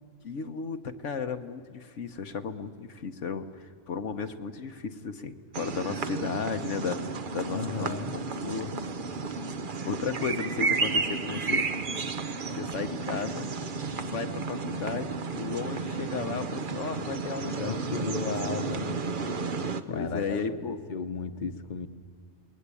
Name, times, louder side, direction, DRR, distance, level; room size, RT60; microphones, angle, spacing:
voice 1, 0.2-8.0 8.4-8.7 9.8-11.7 12.5-13.5 14.0-18.6 19.9-20.8, left 5 dB, 70° left, 7 dB, 1.4 m, -34 dB
sound 1, 5.5-19.8, right 4 dB, 45° right, 1.0 m, -32 dB
voice 2, 7.5-8.2 17.6-19.0 19.9-21.9, left 5 dB, 40° left, 8 dB, 1.1 m, -34 dB
29.0 x 20.5 x 8.4 m, 2.2 s
omnidirectional pair, 1.3 m